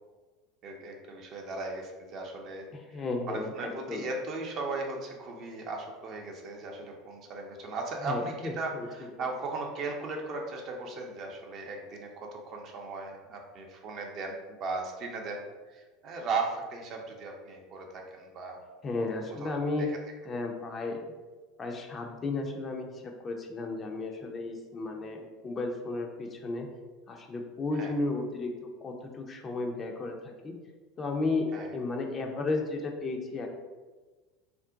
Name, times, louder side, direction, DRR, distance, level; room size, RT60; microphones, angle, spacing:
voice 1, 0.6-15.4 15.7-18.6 19.4-19.5 19.8-19.9 27.8-27.9 31.5-31.7, right 3 dB, 45° right, 1 dB, 0.5 m, -37 dB
voice 2, 2.7-4.0 8.0-8.9 18.8-19.9 20.2-21.0 21.6-26.7 27.1-28.5 28.8-30.5 31.0-33.5, left 3 dB, 30° left, 2 dB, 0.5 m, -33 dB
2.5 x 2.1 x 3.6 m, 1.3 s
hypercardioid pair, 75°, 0 cm